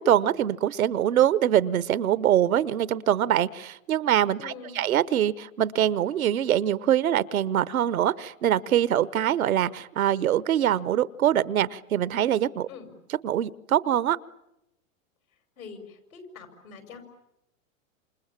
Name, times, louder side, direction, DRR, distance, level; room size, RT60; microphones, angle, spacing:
voice 1, 0.0-12.7 13.2-14.2, right 11 dB, 85° right, 18 dB, 1.0 m, -24 dB
voice 2, 4.4-4.8 12.7-12.9 15.6-17.0, left 5 dB, 80° left, 6 dB, 6.3 m, -44 dB
28.0 x 27.0 x 7.4 m, 0.90 s
hypercardioid pair, 120°, 41 cm